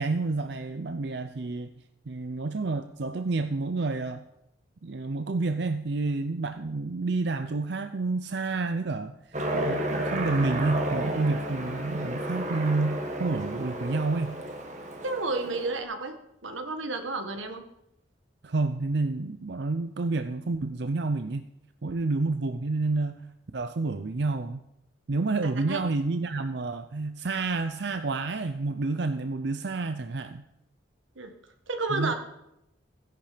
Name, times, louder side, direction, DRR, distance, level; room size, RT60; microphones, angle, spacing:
voice 1, 0.0-1.7 2.1-4.2 4.8-14.4 18.4-21.4 21.8-24.6 25.1-30.4 31.9-32.1, right 3 dB, 60° right, 9 dB, 0.6 m, -29 dB
Aircraft, 9.3-15.8, right 1 dB, 40° right, 1.5 m, -32 dB
voice 2, 15.0-16.2 16.4-17.6 25.4-25.8 31.1-31.3 31.7-32.1, right 3 dB, 90° right, 7 dB, 1.7 m, -31 dB
16.5 x 10.5 x 5.1 m, 0.86 s
head